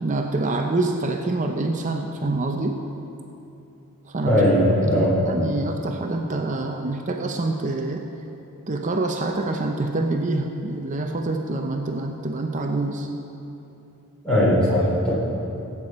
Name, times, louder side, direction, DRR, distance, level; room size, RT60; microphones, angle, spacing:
voice 1, 0.0-2.8 4.0-4.4 4.8-8.0 8.7-13.1, right 2 dB, 35° right, 3 dB, 0.6 m, -26 dB
voice 2, 4.3-5.1 14.2-15.1, equal, 5° left, -8 dB, 3.4 m, -19 dB
18.5 x 8.4 x 4.2 m, 2.8 s
head